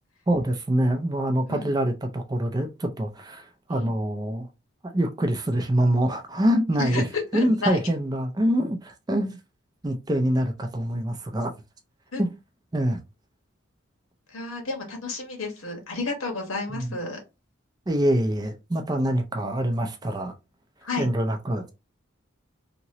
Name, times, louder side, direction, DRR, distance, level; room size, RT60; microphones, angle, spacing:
voice 1, 0.3-4.5 4.8-7.0 7.3-9.4 9.8-11.5 12.2-12.3 12.7-13.0 16.7-16.9 17.9-20.3 21.0-21.6, right 1 dB, 20° right, 0.4 m, -25 dB
voice 2, 7.3-7.8 12.1-12.3 14.3-17.2 20.8-21.1, left 3 dB, 80° left, 1.3 m, -31 dB
2.9 x 2.8 x 2.8 m
head